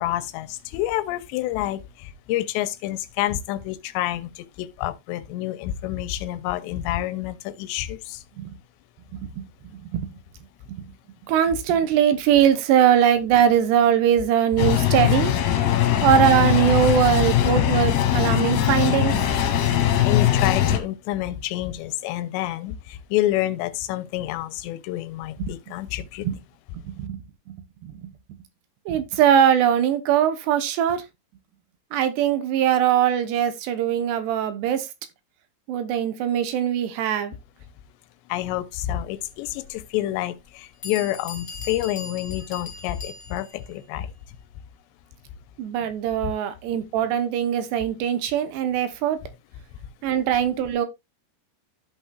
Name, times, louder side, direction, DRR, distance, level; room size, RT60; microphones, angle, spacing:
voice 1, 0.0-8.2 19.8-26.3 38.3-44.4 46.2-46.3 49.8-49.9, left 14 dB, 90° left, 2.8 m, -28 dB
voice 2, 9.1-9.5 9.7-10.1 10.7-10.9 11.3-15.3 16.0-19.2 25.4-25.5 26.2-26.4 26.8-27.2 27.5-27.6 27.8-28.1 28.9-31.0 31.9-34.9 35.7-37.3 45.6-49.2 50.0-50.9, right 9 dB, 80° right, 3.0 m, -21 dB
sound 1, 14.6-20.8, left 10 dB, 70° left, 3.1 m, -20 dB
Bell, 39.6-39.7 40.4-40.5 40.8-43.6, left 3 dB, 30° left, 2.1 m, -39 dB
14.0 x 5.6 x 2.3 m
omnidirectional pair, 5.0 m